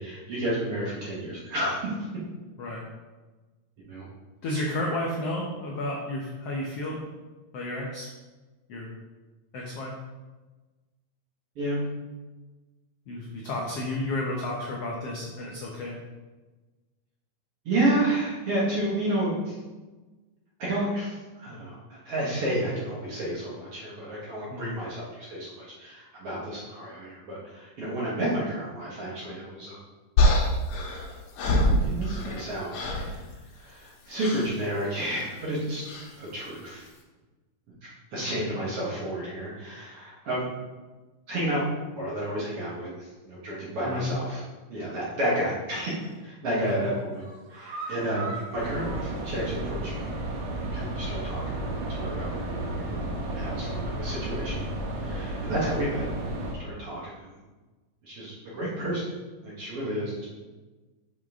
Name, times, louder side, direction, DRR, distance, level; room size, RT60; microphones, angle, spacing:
voice 1, 0.0-2.0 3.8-4.0 11.6-11.8 17.7-19.6 20.6-29.8 31.8-33.2 33.6-35.8 36.2-36.9 37.8-40.5 41.3-41.6 42.0-44.4 44.7-45.9 46.2-47.2 47.5-50.1 50.5-52.3 53.3-54.6 55.0-56.1 56.6-57.4 58.0-59.1 59.4-60.2, right 1 dB, 55° right, -6 dB, 1.8 m, -31 dB
voice 2, 4.4-7.0 7.5-8.1 8.7-8.9 9.5-9.9 13.1-15.9 24.5-24.8 43.8-44.1 46.5-46.6, left 2 dB, 90° left, -3 dB, 1.3 m, -32 dB
sound 1, 30.2-32.4 32.7-33.1 34.2-34.5 35.8-36.1, left 1 dB, 65° left, 2.3 m, -24 dB
sound 2, 45.8-46.2 46.6-50.0 50.3-50.4 50.8-50.9, right 4 dB, 90° right, 3.1 m, -42 dB
sound 3, 48.6-56.5, right 1 dB, 70° right, 2.5 m, -32 dB
7.2 x 6.3 x 3.7 m, 1.2 s
omnidirectional pair, 4.3 m